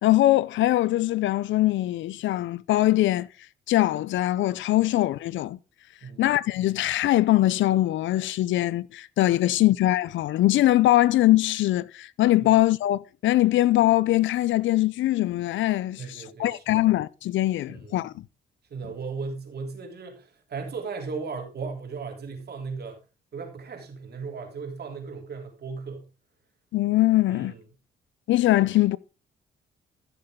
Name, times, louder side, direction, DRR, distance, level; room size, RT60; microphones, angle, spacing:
voice 1, 0.0-3.3 3.7-5.6 6.2-18.2 26.7-27.5 28.3-29.0, left 15 dB, 75° left, 0.5 m, -22 dB
voice 2, 16.0-16.8 17.7-18.0 18.7-23.0 23.3-26.0 27.3-27.6, right 4 dB, 55° right, 3.4 m, -36 dB
14.0 x 6.8 x 3.7 m
cardioid pair, 90°, 20 cm